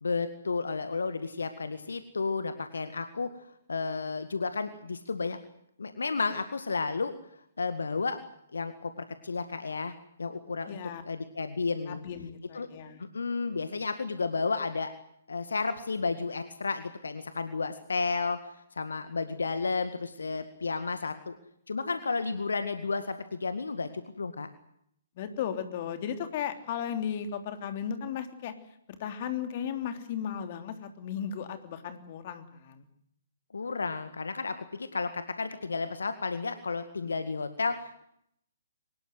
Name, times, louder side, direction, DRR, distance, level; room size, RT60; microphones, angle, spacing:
voice 1, 0.0-3.3 3.7-5.4 5.8-7.2 7.6-8.2 8.5-10.8 11.1-12.0 12.5-12.7 13.1-14.9 15.3-21.4 21.7-24.5 33.5-38.0, left 4 dB, 70° left, 10 dB, 1.9 m, -32 dB
voice 2, 10.7-11.0 11.9-13.0 25.2-28.5 29.0-32.9, left 8 dB, 40° left, 8 dB, 3.3 m, -35 dB
24.0 x 20.0 x 8.0 m, 0.72 s
figure-of-eight pair, 125°, 0 cm